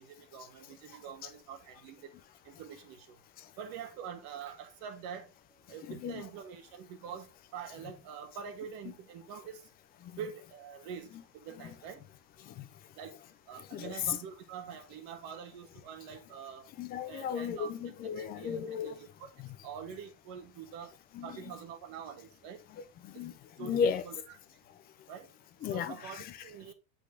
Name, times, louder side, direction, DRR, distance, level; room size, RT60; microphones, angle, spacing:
voice 1, 0.0-2.1 2.4-3.2 3.6-9.7 10.2-12.0 12.9-13.2 13.5-16.7 17.0-17.7 18.1-19.3 19.6-22.6 23.1-23.2 23.6-24.2 25.1-25.3 25.7-26.7, right 7 dB, 45° right, 1.5 m, -45 dB
voice 2, 5.9-6.2 10.0-10.1 11.6-11.7 12.4-12.7 13.6-14.2 16.8-19.0 19.4-19.6 21.1-21.5 22.7-24.0 25.6-26.4, left 7 dB, 20° left, 0.4 m, -36 dB
8.0 x 4.2 x 3.7 m
supercardioid pair, 140°, 50 cm